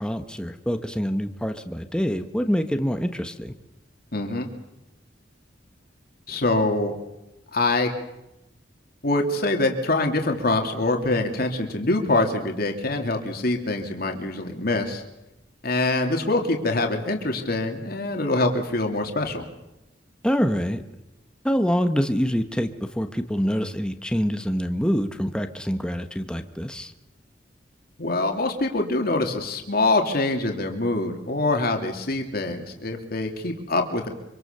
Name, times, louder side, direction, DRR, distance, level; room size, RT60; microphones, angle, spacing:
voice 1, 0.0-3.5 20.2-20.8 21.4-26.9, equal, 5° left, 7 dB, 1.3 m, -25 dB
voice 2, 4.1-4.5 6.3-6.9 7.5-7.9 9.0-15.0 15.6-19.4 28.0-34.1, left 2 dB, 55° left, 3 dB, 2.9 m, -24 dB
26.0 x 25.0 x 6.9 m, 0.93 s
head